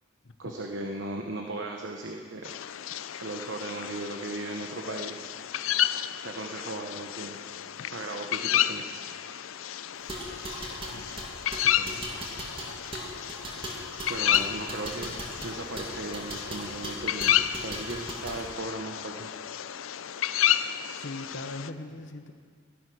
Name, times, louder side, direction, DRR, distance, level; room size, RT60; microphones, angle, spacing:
voice 1, 0.4-2.5 3.2-5.3 6.2-7.4 7.9-8.8 14.1-15.2 15.4-19.3, right 2 dB, 65° right, 2 dB, 1.1 m, -37 dB
sound 1, 2.4-21.7, left 11 dB, 85° left, 0.5 m, -31 dB
sound 2, 10.0-18.4, right 1 dB, 25° right, 2.3 m, -39 dB
voice 2, 11.6-12.0 20.1-20.6 20.9-22.3, left 2 dB, 65° left, 7 dB, 1.1 m, -42 dB
16.5 x 12.5 x 6.2 m, 2.1 s
head